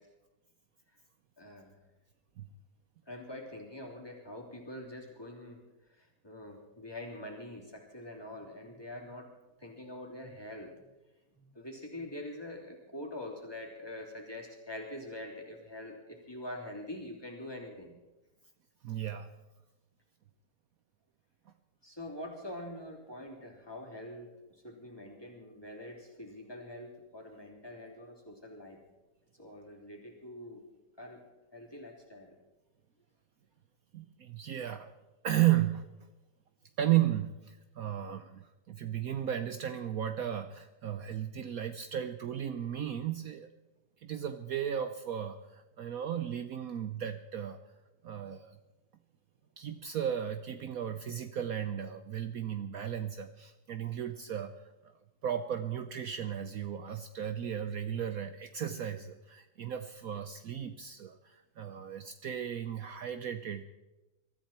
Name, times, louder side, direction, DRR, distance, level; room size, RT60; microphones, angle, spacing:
voice 1, 1.4-1.8 3.1-5.6 6.0-9.3 9.6-10.9 11.3-18.0 21.8-24.3 24.6-28.8 29.4-30.6 31.0-31.2 31.5-32.4, left 1 dB, 15° left, -1 dB, 3.2 m, -45 dB
voice 2, 18.8-19.3 33.9-34.9 35.2-36.1 36.8-43.5 44.0-47.6 48.0-48.6 49.6-54.9 55.2-63.6, right 11 dB, 65° right, 9 dB, 1.1 m, -34 dB
22.5 x 13.5 x 4.4 m, 1.1 s
omnidirectional pair, 1.8 m